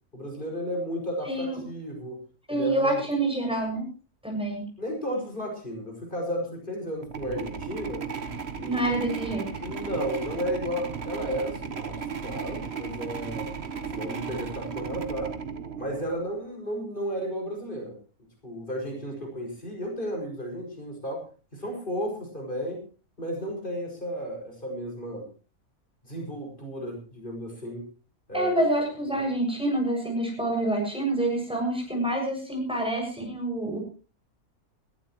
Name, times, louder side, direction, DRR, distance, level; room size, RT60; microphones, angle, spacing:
voice 1, 0.1-2.2 2.5-2.9 4.8-8.0 8.6-8.9 9.6-13.5 13.9-15.3 15.8-18.0 18.4-21.2 21.5-22.9 23.2-25.3 26.0-27.9 28.3-28.6 29.1-29.3, equal, 35° left, 0 dB, 6.3 m, -33 dB
voice 2, 1.3-1.6 2.5-3.9 4.2-4.6 8.6-9.4 28.3-33.8, right 1 dB, 5° right, 1 dB, 7.1 m, -27 dB
sound 1, 7.0-16.4, right 6 dB, 45° right, 1.5 m, -35 dB
21.0 x 15.0 x 3.1 m, 0.35 s
omnidirectional pair, 1.6 m